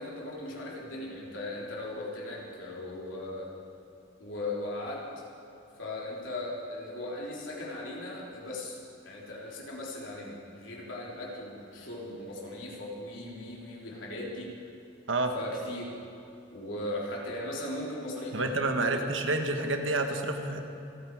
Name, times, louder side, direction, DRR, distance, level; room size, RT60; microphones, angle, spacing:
voice 1, 0.0-3.5 4.2-5.0 5.8-8.8 9.0-14.5 15.3-15.9 16.5-18.5 18.8-19.0, left 1 dB, 85° left, -4 dB, 3.3 m, -38 dB
voice 2, 18.3-20.6, right 2 dB, 90° right, 5 dB, 1.4 m, -29 dB
27.0 x 9.3 x 4.8 m, 2.8 s
head